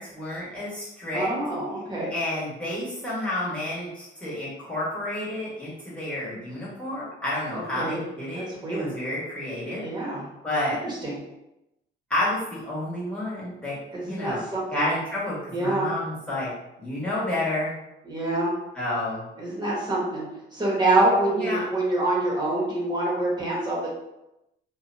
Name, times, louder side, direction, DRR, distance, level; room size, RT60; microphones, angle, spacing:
voice 1, 0.0-1.3 2.1-9.8 10.4-10.8 12.1-13.8 14.0-14.4 14.7-16.5 16.8-17.7 18.7-19.3 21.3-21.6, left 1 dB, 5° left, -8 dB, 1.4 m, -30 dB
voice 2, 1.1-2.1 7.5-8.0 8.3-8.9 9.8-10.3 10.8-11.2 13.9-14.9 15.5-15.9 18.0-18.5 19.4-20.3 20.5-23.9, right 2 dB, 20° right, -4 dB, 1.1 m, -26 dB
2.7 x 2.2 x 2.6 m, 0.89 s
cardioid pair, 90°, 20 cm